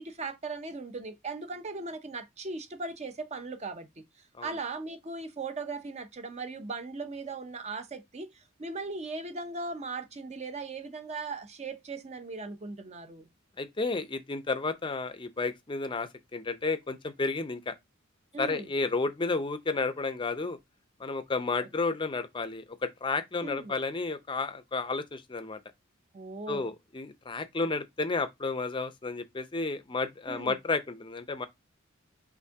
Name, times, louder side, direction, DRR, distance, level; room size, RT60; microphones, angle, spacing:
voice 1, 0.0-4.0 4.4-13.3 18.3-18.7 23.4-23.8 26.1-26.7 30.3-30.6, right 3 dB, 35° right, 0.6 m, -38 dB
voice 2, 13.6-17.7 18.4-20.6 21.0-25.6 26.5-31.5, left 3 dB, 25° left, 0.5 m, -32 dB
5.4 x 2.6 x 3.4 m
head